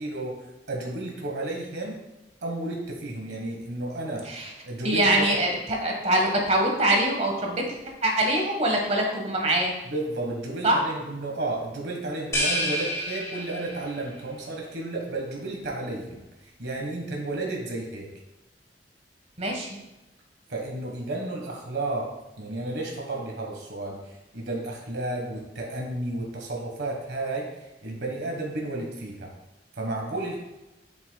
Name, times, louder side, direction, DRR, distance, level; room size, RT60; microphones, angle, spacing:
voice 1, 0.0-2.0 2.4-4.3 4.6-5.4 9.8-18.1 20.5-22.1 22.4-29.3 29.7-30.4, right 2 dB, 75° right, 0 dB, 1.5 m, -32 dB
voice 2, 4.8-9.7 10.6-10.8 19.4-19.7, right 1 dB, 40° right, 1 dB, 1.4 m, -24 dB
sound 1, 12.3-14.0, equal, 15° left, 1.4 m, -28 dB
8.0 x 7.3 x 2.3 m, 1.0 s
head